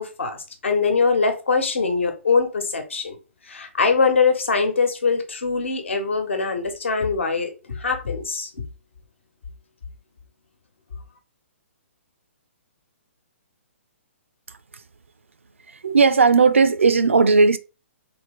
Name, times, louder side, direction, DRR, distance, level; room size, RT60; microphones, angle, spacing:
voice 1, 0.0-3.2 3.4-8.6, left 4 dB, 60° left, 1.2 m, -22 dB
voice 2, 15.8-17.6, right 4 dB, 70° right, 0.4 m, -16 dB
3.6 x 3.4 x 3.4 m
figure-of-eight pair, 125°, 7 cm